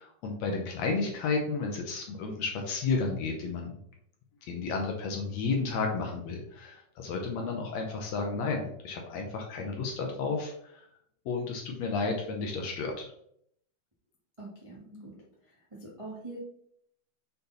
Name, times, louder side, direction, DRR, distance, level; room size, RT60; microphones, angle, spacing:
voice 1, 0.0-3.7 4.4-10.9 11.3-13.1, left 4 dB, 70° left, 2 dB, 1.8 m, -32 dB
voice 2, 14.4-15.2 15.4-16.4, right 2 dB, 40° right, -5 dB, 0.4 m, -44 dB
6.8 x 4.3 x 4.0 m, 0.69 s
omnidirectional pair, 3.8 m